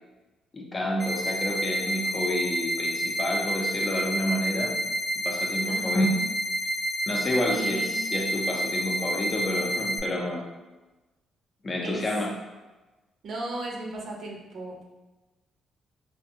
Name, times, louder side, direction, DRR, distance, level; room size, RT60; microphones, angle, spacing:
voice 1, 0.5-4.8 5.2-6.1 7.1-10.5 11.6-12.4, left 1 dB, 35° left, -1 dB, 0.6 m, -29 dB
sound 1, 1.0-10.0, equal, 15° right, 0.7 m, -29 dB
voice 2, 5.7-6.2 7.5-8.0 11.8-12.0 13.2-14.8, right 2 dB, 60° right, -1 dB, 0.7 m, -36 dB
3.4 x 2.5 x 2.7 m, 1.1 s
cardioid pair, 90°, 0 cm